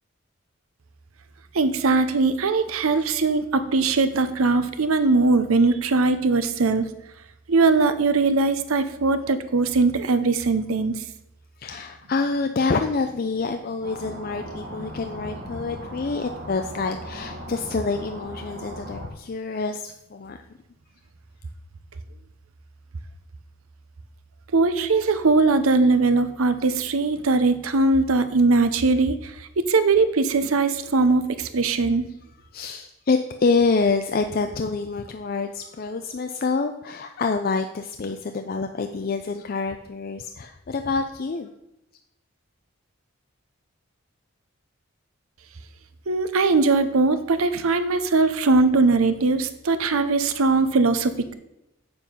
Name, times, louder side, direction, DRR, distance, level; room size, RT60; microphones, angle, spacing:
voice 1, 1.5-6.9 7.5-11.0 24.5-32.0 46.1-51.3, right 3 dB, 85° right, 11 dB, 0.7 m, -20 dB
voice 2, 11.6-20.4 32.5-41.5, left 4 dB, 45° left, 6 dB, 0.4 m, -27 dB
sound 1, 13.8-19.1, equal, 45° right, 1.1 m, -38 dB
7.4 x 6.9 x 5.3 m, 0.87 s
head